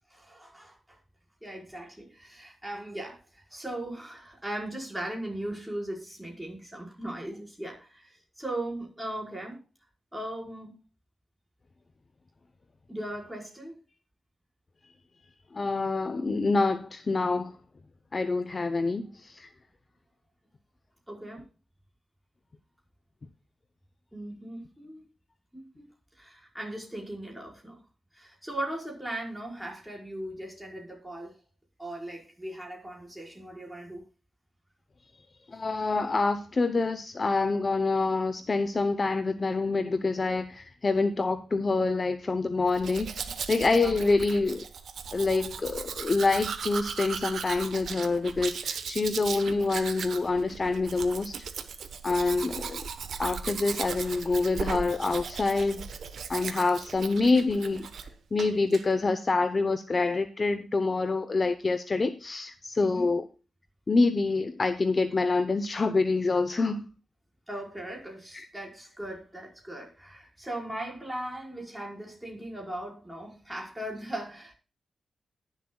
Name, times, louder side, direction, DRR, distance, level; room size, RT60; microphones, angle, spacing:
voice 1, 0.1-1.0 1.4-9.6 10.1-10.7 12.9-13.7 21.1-21.4 24.1-25.0 25.5-25.8 26.2-27.7 28.1-31.4 31.8-34.0 43.3-43.4 43.8-43.9 62.8-63.1 67.5-74.5, right 1 dB, 5° right, 4.9 m, -38 dB
voice 2, 15.5-17.6 18.1-19.5 35.5-43.2 43.5-44.6 45.1-51.3 52.0-52.9 53.2-55.8 56.3-57.9 58.3-63.3 63.9-66.9 68.3-68.5, left 3 dB, 35° left, 0.8 m, -26 dB
Domestic sounds home sounds, 42.7-58.1 58.4-58.8, right 6 dB, 75° right, 1.0 m, -37 dB
20.5 x 7.4 x 2.3 m
wide cardioid pair, 115°, 0 cm